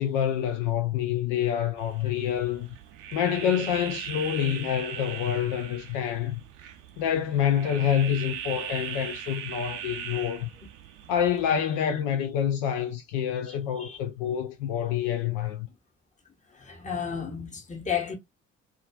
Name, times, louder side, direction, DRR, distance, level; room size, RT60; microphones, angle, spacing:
voice 1, 0.0-2.8 3.1-6.4 7.0-10.5 11.1-15.7, left 9 dB, 65° left, 0.5 m, -27 dB
sound 1, 1.8-11.6, right 9 dB, 60° right, 0.6 m, -39 dB
voice 2, 13.5-14.0 16.5-18.2, left 7 dB, 20° left, 0.9 m, -33 dB
2.4 x 2.3 x 2.2 m
figure-of-eight pair, 45°, 36 cm